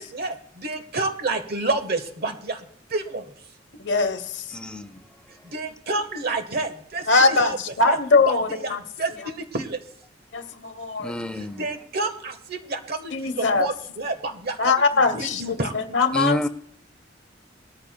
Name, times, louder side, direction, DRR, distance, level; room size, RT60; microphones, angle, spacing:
voice 1, 0.0-3.3 5.4-8.0 8.3-9.8 11.5-15.8, right 2 dB, 55° right, 1.3 m, -29 dB
voice 2, 3.8-4.4 7.1-8.8 10.3-11.1 13.1-13.7 14.6-15.4 15.7-16.5, left 3 dB, 75° left, 1.0 m, -21 dB
voice 3, 4.5-5.1 11.0-11.7 16.1-16.5, equal, 5° left, 0.5 m, -28 dB
19.5 x 13.5 x 2.2 m
head